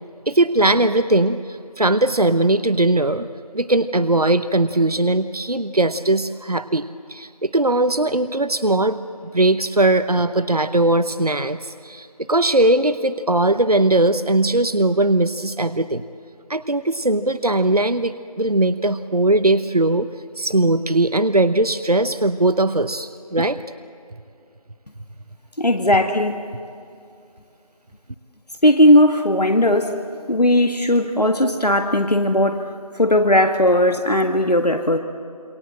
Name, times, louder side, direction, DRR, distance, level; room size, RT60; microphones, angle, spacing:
voice 1, 0.3-3.3 3.5-6.8 7.1-9.0 9.3-16.0 16.5-20.1 20.4-23.6, right 2 dB, 70° right, 12 dB, 0.9 m, -19 dB
voice 2, 25.6-26.4 28.6-30.0 30.3-32.7 32.9-35.0, left 1 dB, 85° left, 6 dB, 1.6 m, -17 dB
28.0 x 23.5 x 7.6 m, 2.5 s
figure-of-eight pair, 180°, 20 cm